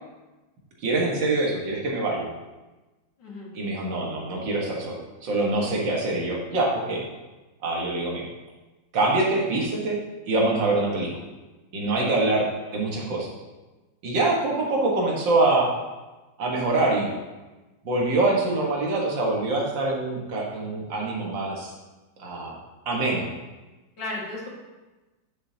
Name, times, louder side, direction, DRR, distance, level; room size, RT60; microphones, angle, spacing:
voice 1, 0.8-2.3 3.5-7.0 7.6-8.3 8.9-10.0 10.3-11.1 11.7-12.5 12.7-13.3 14.0-15.7 16.4-17.1 17.9-21.7 22.2-22.5 22.9-23.3, right 2 dB, 70° right, -2 dB, 2.1 m, -24 dB
voice 2, 3.2-3.5 12.0-12.5 24.0-24.5, left 2 dB, 65° left, -4 dB, 2.4 m, -35 dB
9.8 x 7.1 x 2.8 m, 1.1 s
omnidirectional pair, 2.1 m